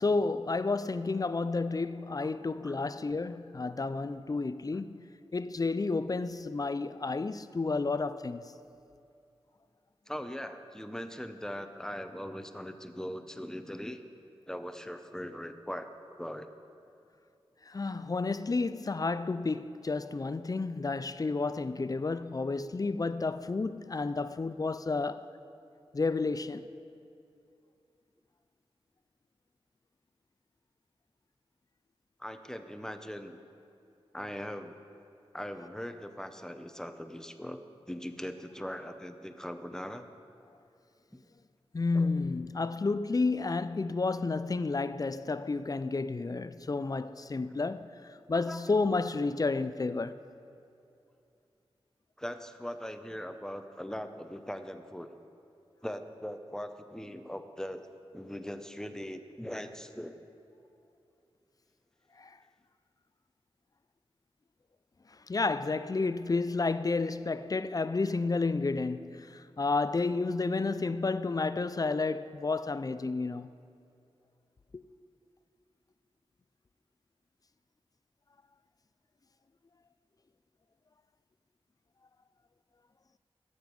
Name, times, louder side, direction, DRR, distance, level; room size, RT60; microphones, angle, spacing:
voice 1, 0.0-5.0 5.3-8.4 17.7-25.2 25.9-26.6 41.7-47.9 48.3-50.2 62.2-62.3 65.3-73.5 74.7-74.8, left 3 dB, 35° left, 0.4 m, -31 dB
voice 2, 10.1-14.0 14.5-15.9 16.2-16.5 32.2-33.4 34.1-34.7 35.3-37.6 37.9-40.1 41.9-42.1 48.3-48.6 52.2-55.1 55.8-57.9 58.1-60.2, equal, 5° left, 0.7 m, -40 dB
13.0 x 7.9 x 5.3 m
wide cardioid pair, 50°, 11 cm